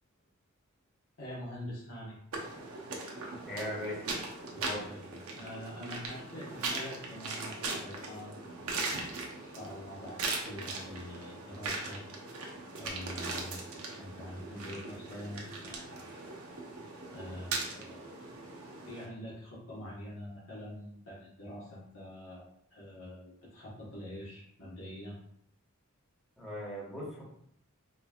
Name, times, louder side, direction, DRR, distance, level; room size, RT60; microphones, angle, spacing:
voice 1, 1.2-2.2 4.5-9.0 9.3-12.0 12.7-16.2 17.1-18.0 18.8-22.4 22.7-25.2, left 1 dB, 65° left, -9 dB, 1.2 m, -45 dB
sound 1, 2.3-19.1, right 3 dB, 90° right, 0.7 m, -40 dB
voice 2, 3.4-4.1 4.5-4.8 26.4-27.2, left 1 dB, ahead, -7 dB, 1.2 m, -39 dB
4.3 x 2.9 x 2.4 m, 0.68 s
head